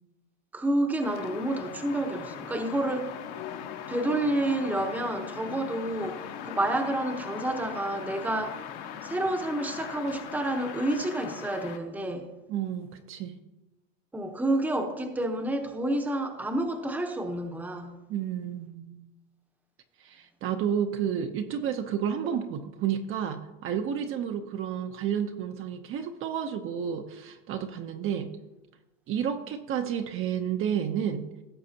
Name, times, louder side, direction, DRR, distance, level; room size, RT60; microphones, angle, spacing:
voice 1, 0.5-3.2 3.9-8.6 9.0-12.3 14.1-18.0, right 1 dB, 5° right, 0.9 m, -29 dB
sound 1, 1.0-11.8, left 9 dB, 60° left, 1.3 m, -40 dB
voice 2, 12.5-13.4 18.1-19.1 20.0-28.3 29.1-31.3, right 8 dB, 35° right, 0.7 m, -31 dB
17.0 x 6.9 x 2.8 m
supercardioid pair, 135°, 35 cm